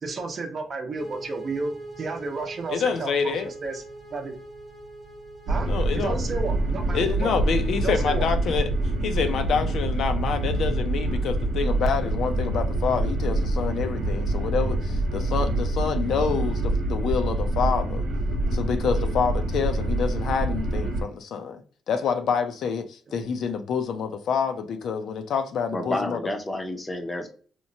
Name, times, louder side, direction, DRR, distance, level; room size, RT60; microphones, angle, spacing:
voice 1, 0.0-3.8 4.1-4.3 5.5-7.3 7.8-8.3 23.1-23.2, right 3 dB, 45° right, 0.6 m, -32 dB
sound 1, 1.0-19.7, right 1 dB, 10° right, 0.9 m, -46 dB
voice 2, 2.7-3.5 5.7-6.2 6.9-8.7 9.0-18.1 18.5-21.6 21.9-26.2, left 6 dB, 70° left, 0.4 m, -27 dB
sound 2, 5.5-21.0, right 2 dB, 75° right, 0.7 m, -26 dB
voice 3, 25.7-27.3, left 1 dB, 20° left, 0.6 m, -30 dB
2.9 x 2.1 x 2.6 m
cardioid pair, 90°, 0 cm